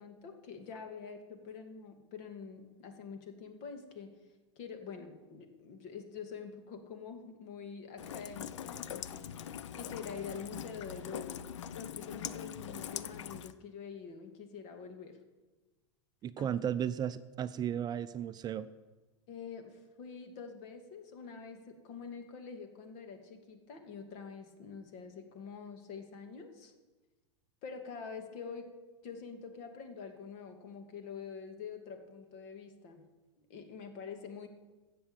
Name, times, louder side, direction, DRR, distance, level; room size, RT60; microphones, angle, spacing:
voice 1, 0.0-4.1 4.6-9.4 9.7-11.4 11.7-15.2 16.4-16.5 19.3-26.7 27.6-28.7 29.0-33.0 33.5-34.5, left 6 dB, 50° left, 6 dB, 2.4 m, -46 dB
Rain, 8.0-13.5, left 9 dB, 80° left, 0.7 m, -42 dB
voice 2, 16.2-18.7, right 9 dB, 25° right, 12 dB, 0.5 m, -34 dB
13.5 x 7.7 x 8.9 m, 1.2 s
hypercardioid pair, 115°, 15 cm